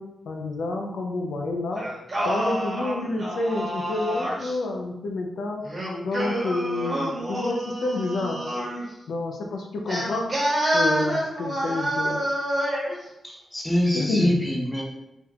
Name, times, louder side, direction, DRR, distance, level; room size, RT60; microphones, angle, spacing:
voice 1, 0.0-1.8 2.2-5.7 6.0-8.4 9.1-10.3 10.7-12.2 13.9-14.4, left 2 dB, 80° left, 1 dB, 0.5 m, -29 dB
Singing, 1.8-4.6 5.6-8.8 9.9-13.0, equal, 30° right, 1.1 m, -27 dB
voice 2, 13.2-14.8, equal, 10° left, -1 dB, 0.6 m, -25 dB
3.6 x 2.3 x 2.9 m, 0.90 s
wide cardioid pair, 135°, 0 cm